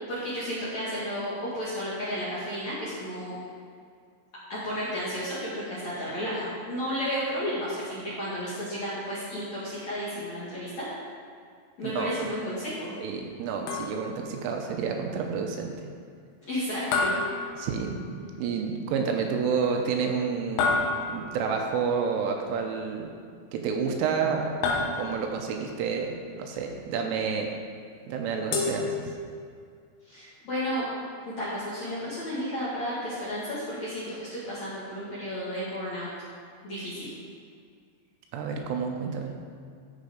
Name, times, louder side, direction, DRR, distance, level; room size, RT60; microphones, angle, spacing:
voice 1, 0.1-3.4 4.5-10.9 11.8-12.9 16.4-17.1 30.1-30.9 31.3-36.1 36.6-37.1, equal, 55° left, -10 dB, 2.1 m, -32 dB
voice 2, 11.8-12.1 13.0-15.7 17.6-18.0 18.4-20.8 21.1-23.1 23.5-27.5 28.1-29.1 38.3-39.4, right 6 dB, 80° right, 3 dB, 3.2 m, -29 dB
cuenco metal, 13.7-14.3 16.9-18.2 20.6-21.5 24.6-25.5 28.5-29.5, left 3 dB, 80° left, 3.8 m, -29 dB
14.0 x 5.3 x 5.1 m, 2.2 s
omnidirectional pair, 5.9 m